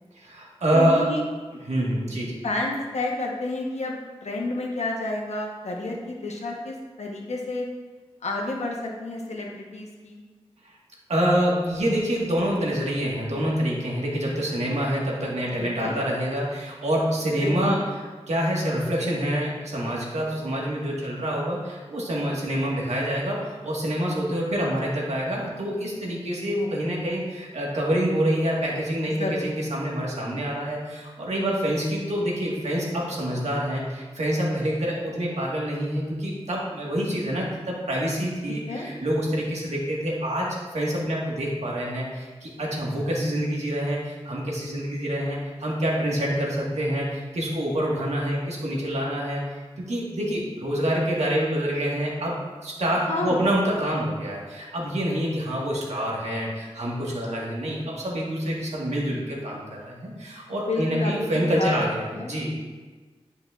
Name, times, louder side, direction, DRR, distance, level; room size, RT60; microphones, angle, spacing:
voice 1, 0.1-1.1 1.5-2.4 11.1-52.4 52.6-62.5, equal, 85° right, -4 dB, 1.6 m, -26 dB
voice 2, 0.7-1.2 2.4-7.7 8.2-10.2 15.6-16.0 17.4-17.8 29.1-29.5 38.5-38.9 53.1-53.4 60.7-61.7 62.1-62.4, left 2 dB, 85° left, 0 dB, 1.1 m, -30 dB
10.0 x 5.3 x 2.5 m, 1.4 s
wide cardioid pair, 60°, 11 cm